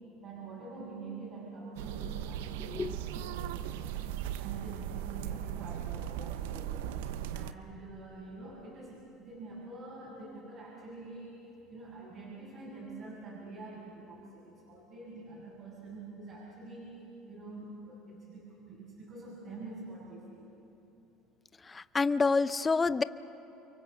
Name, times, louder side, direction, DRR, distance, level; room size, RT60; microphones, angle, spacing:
voice 1, 0.2-7.1 7.3-20.5, right 3 dB, 50° right, -6 dB, 7.5 m, -46 dB
sound 1, 1.7-7.5, right 10 dB, 85° right, 0.8 m, -38 dB
voice 2, 21.9-23.0, left 4 dB, 25° left, 14 dB, 0.7 m, -26 dB
29.5 x 24.0 x 7.0 m, 3.0 s
hypercardioid pair, 80°, 0 cm